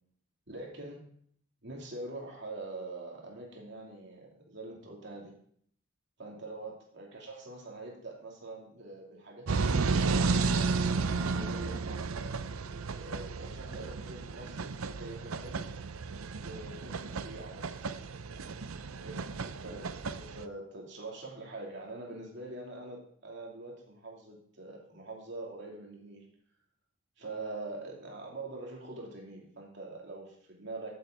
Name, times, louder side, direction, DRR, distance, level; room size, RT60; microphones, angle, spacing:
voice 1, 0.5-1.0 1.6-5.3 6.2-10.3 11.0-12.4 13.0-15.7 16.4-17.9 19.0-19.9 20.1-26.3 27.2-31.0, right 2 dB, 55° right, -2 dB, 2.9 m, -44 dB
sound 1, 9.5-20.4, right 4 dB, 80° right, 0.6 m, -33 dB
14.0 x 7.7 x 3.9 m, 0.62 s
head